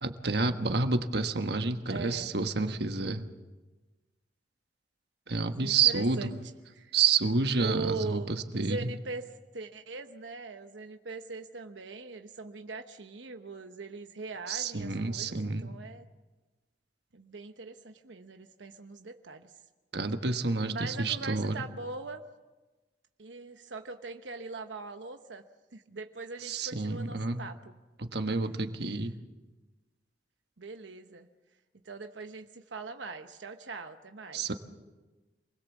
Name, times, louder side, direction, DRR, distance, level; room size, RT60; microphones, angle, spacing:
voice 1, 0.0-3.3 5.3-6.3 6.9-8.9 14.5-15.8 19.9-21.6 26.4-27.4 28.0-29.2 34.3-34.5, right 4 dB, 65° right, 7 dB, 1.4 m, -29 dB
voice 2, 1.9-2.3 5.5-6.3 6.7-6.9 7.6-16.1 17.1-19.5 20.7-22.2 23.2-25.4 25.7-27.7 30.6-31.3 31.8-34.5, right 3 dB, 90° right, 6 dB, 1.0 m, -41 dB
27.0 x 20.5 x 7.2 m, 1.2 s
head